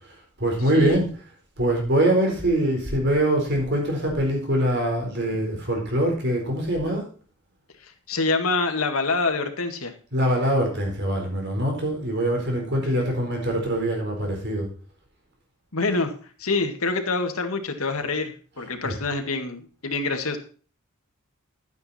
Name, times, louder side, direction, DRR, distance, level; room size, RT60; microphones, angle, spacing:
voice 1, 0.4-1.1 1.6-7.0 10.1-14.7 18.8-19.0, right 1 dB, 55° right, 1 dB, 4.3 m, -23 dB
voice 2, 8.1-9.9 15.7-16.1 16.4-20.4, left 3 dB, 85° left, 6 dB, 1.8 m, -26 dB
11.5 x 9.4 x 4.3 m, 0.40 s
head